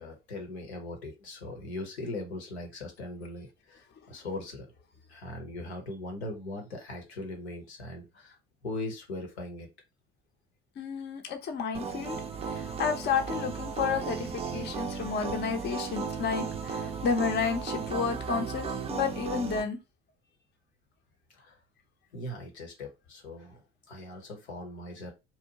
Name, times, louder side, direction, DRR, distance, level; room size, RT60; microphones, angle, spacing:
voice 1, 0.0-4.7 5.1-8.4 8.6-9.7 21.3-21.6 22.1-25.1, left 2 dB, 80° left, 0.8 m, -40 dB
voice 2, 10.8-12.2 12.4-19.8, left 6 dB, 35° left, 0.6 m, -31 dB
sound 1, 11.7-19.6, right 5 dB, 20° right, 0.4 m, -35 dB
2.7 x 2.1 x 2.7 m
figure-of-eight pair, 60°, 32 cm